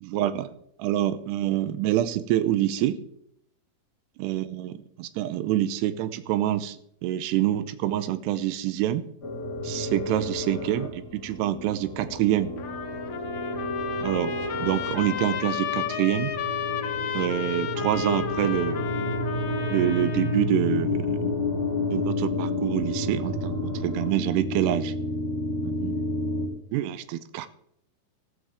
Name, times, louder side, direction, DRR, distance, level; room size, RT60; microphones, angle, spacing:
voice 1, 0.0-0.5 0.8-3.0 4.2-6.8 7.0-9.1 9.6-12.5 14.0-16.4 17.1-18.9 19.7-21.2 21.9-24.9 25.6-26.0 26.7-27.5, right 13 dB, 90° right, 12 dB, 2.8 m, -26 dB
sound 1, 9.2-26.5, left 2 dB, 35° left, 2.9 m, -30 dB
Trumpet, 12.6-20.5, left 9 dB, 65° left, 1.9 m, -33 dB
14.5 x 14.0 x 3.6 m, 0.72 s
omnidirectional pair, 4.7 m